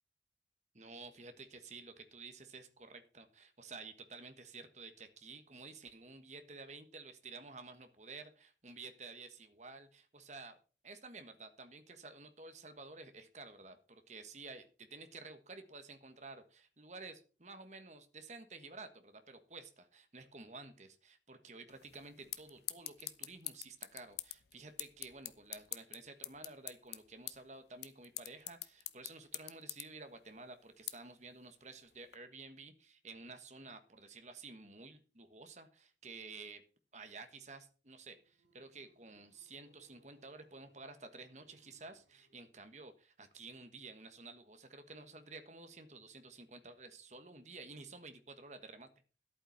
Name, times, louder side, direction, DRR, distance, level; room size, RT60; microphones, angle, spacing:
voice 1, 0.7-10.5 10.8-36.6 36.9-48.9, right 3 dB, 40° right, 8 dB, 1.5 m, -52 dB
sound 1, 21.7-32.2, left 15 dB, 65° left, 0.8 m, -48 dB
sound 2, 38.1-42.8, right 1 dB, 85° right, 2.3 m, -72 dB
11.5 x 8.7 x 5.9 m, 0.37 s
head